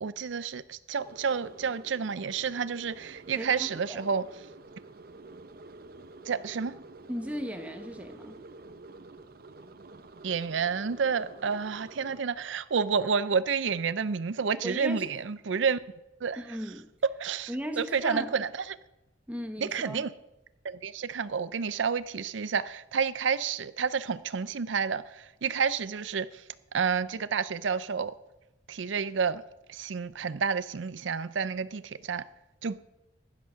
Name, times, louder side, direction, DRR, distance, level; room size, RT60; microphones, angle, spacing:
voice 1, 0.0-4.3 6.3-6.8 10.2-15.8 16.2-16.4 17.2-17.5 17.8-18.5 19.6-20.1 20.6-26.4 26.7-28.2 28.7-29.4 29.7-32.2 32.6-32.8, right 6 dB, 80° right, 0.5 m, -30 dB
sound 1, 1.0-12.2, right 2 dB, 50° right, 0.8 m, -49 dB
voice 2, 3.3-4.0 7.1-8.4 14.6-15.1 16.4-16.9 17.5-18.3 19.3-20.0, equal, 5° right, 1.3 m, -37 dB
15.5 x 11.0 x 5.8 m
head